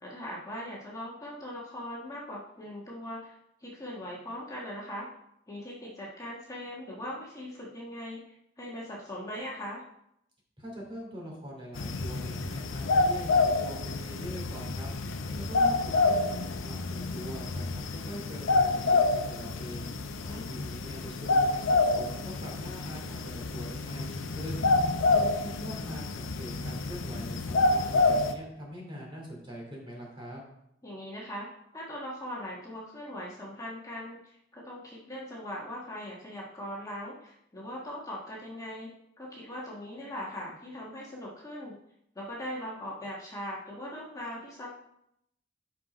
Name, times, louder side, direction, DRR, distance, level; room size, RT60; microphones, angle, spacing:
voice 1, 0.0-5.1 5.5-8.2 8.6-9.8 15.3-15.5 20.2-20.5 30.8-31.5 31.7-38.9 39.2-41.7 42.1-44.7, equal, 20° left, -5 dB, 1.4 m, -40 dB
voice 2, 10.6-14.9 15.4-19.9 20.3-24.7 25.1-30.4, equal, 30° right, -2 dB, 2.7 m, -43 dB
sound 1, 11.7-28.3, left 3 dB, 85° left, 0.7 m, -28 dB
6.1 x 5.7 x 4.9 m, 0.76 s
head